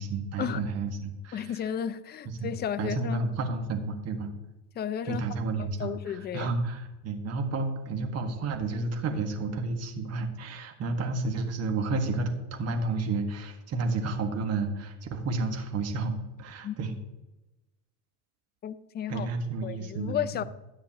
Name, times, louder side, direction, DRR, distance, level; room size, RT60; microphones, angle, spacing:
voice 1, 0.0-1.6 2.2-2.5 2.8-4.4 5.0-16.9 19.1-20.4, right 3 dB, 40° right, 1.6 m, -31 dB
voice 2, 1.3-3.2 4.8-5.2 5.6-6.5 16.6-16.8 18.6-19.3 19.6-20.4, left 9 dB, 25° left, 0.5 m, -33 dB
13.5 x 9.3 x 3.0 m
supercardioid pair, 120°, 40 cm